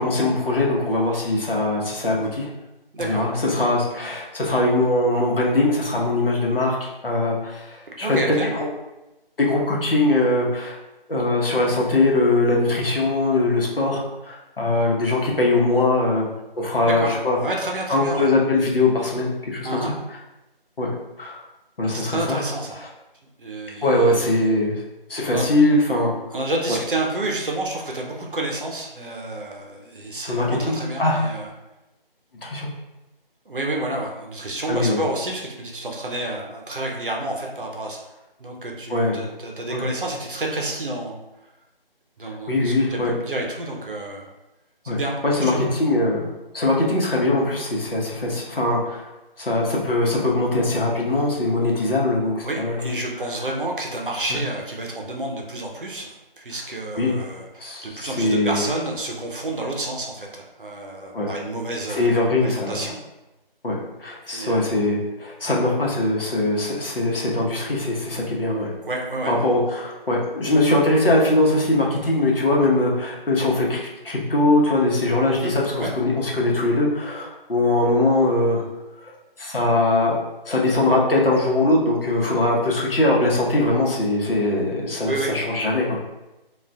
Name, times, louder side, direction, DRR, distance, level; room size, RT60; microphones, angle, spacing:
voice 1, 0.0-2.5 3.0-8.2 8.5-8.6 9.4-10.8 11.1-16.3 16.6-17.4 17.9-19.9 20.8-20.9 21.2-21.4 21.8-22.4 23.8-24.8 25.1-26.1 30.2-31.2 32.4-32.7 34.7-35.0 38.9-39.2 39.7-39.8 42.2-43.1 44.9-45.0 45.2-46.3 46.5-49.1 49.4-52.9 54.3-54.4 56.9-57.2 57.6-58.6 61.1-61.3 61.9-62.8 63.6-68.7 69.3-78.6 79.0-79.1 79.4-80.1 80.5-86.0, left 2 dB, 70° left, -3 dB, 0.9 m, -21 dB
voice 2, 2.9-3.3 8.0-8.6 16.8-18.3 19.6-19.9 21.8-22.8 23.4-24.2 25.3-25.5 26.3-31.5 33.5-38.0 38.4-41.2 42.2-44.3 44.8-45.1 45.4-45.6 52.4-63.0 64.2-64.7 68.9-69.4 75.4-75.5 75.8-75.9 85.0-85.3, right 2 dB, 60° right, 0 dB, 0.6 m, -29 dB
2.4 x 2.4 x 3.3 m, 1.0 s
figure-of-eight pair, 165°, 29 cm